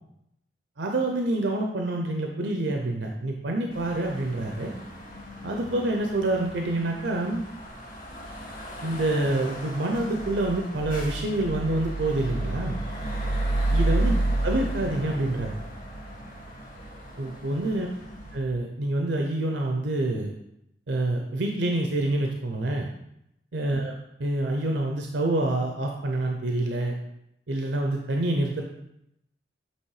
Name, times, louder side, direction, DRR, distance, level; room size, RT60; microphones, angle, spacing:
voice 1, 0.8-4.7 5.4-7.4 8.8-12.8 13.7-14.1 14.4-15.6 17.2-17.9 18.3-20.3 20.9-22.9 23.5-23.9 24.2-26.9 27.5-28.6, right 2 dB, 75° right, 2 dB, 0.7 m, -27 dB
sound 1, 3.7-18.4, right 1 dB, 50° left, 1.9 m, -32 dB
8.3 x 3.1 x 4.8 m, 0.81 s
head